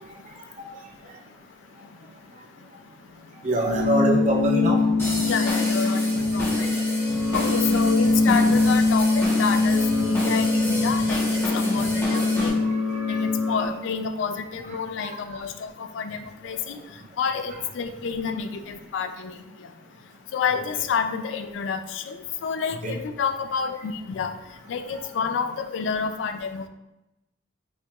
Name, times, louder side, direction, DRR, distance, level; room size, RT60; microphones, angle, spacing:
voice 1, 0.0-3.5 5.2-26.7, left 6 dB, 75° left, 8 dB, 0.3 m, -30 dB
voice 2, 3.4-4.9 12.1-12.5 13.1-13.2 20.5-20.6 22.8-22.9, right 2 dB, 40° right, 0 dB, 0.5 m, -25 dB
sound 1, 3.7-13.7, left 3 dB, 85° right, 0.7 m, -22 dB
sound 2, 5.0-12.5, left 1 dB, 15° left, 0.7 m, -31 dB
4.7 x 2.3 x 2.9 m, 0.93 s
head